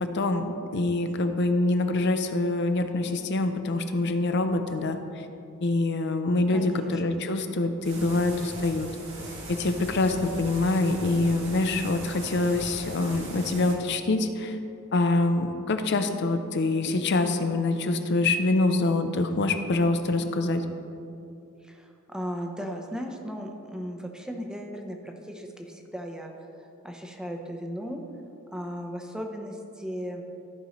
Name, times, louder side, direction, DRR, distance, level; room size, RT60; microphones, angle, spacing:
voice 1, 0.1-5.0 5.6-8.9 9.5-14.6 14.9-20.6, left 2 dB, 55° left, 7 dB, 0.6 m, -25 dB
voice 2, 6.5-7.0 21.6-26.3 26.8-28.0 28.5-30.2, equal, 5° right, 2 dB, 0.7 m, -36 dB
sound 1, 7.8-13.7, right 1 dB, 65° right, 1.8 m, -40 dB
14.0 x 5.2 x 3.1 m, 2.7 s
head